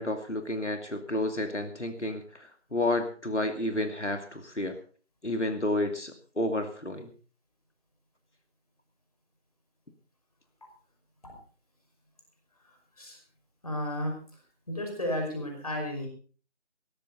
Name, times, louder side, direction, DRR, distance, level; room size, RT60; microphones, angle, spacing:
voice 1, 0.0-4.8 5.2-7.1, left 1 dB, 85° left, 6 dB, 2.6 m, -31 dB
voice 2, 13.6-14.2 14.7-16.1, left 1 dB, 30° left, 2 dB, 5.3 m, -32 dB
17.0 x 14.5 x 4.0 m, 0.40 s
figure-of-eight pair, 170°, 35 cm